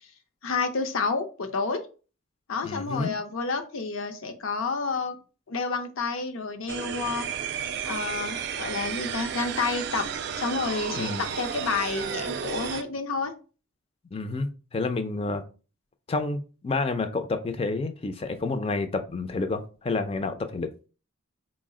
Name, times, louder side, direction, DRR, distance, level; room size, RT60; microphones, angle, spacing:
voice 1, 0.4-1.8 2.5-5.2 5.5-7.2 7.8-10.0 10.4-11.1 11.4-13.3, left 4 dB, 80° left, 6 dB, 0.6 m, -29 dB
voice 2, 2.6-3.1 10.9-11.2 14.1-15.4 16.1-20.7, left 3 dB, 25° left, 8 dB, 0.3 m, -29 dB
sound 1, 6.7-12.8, right 7 dB, 55° right, 0.3 m, -33 dB
3.9 x 2.0 x 3.6 m, 0.35 s
head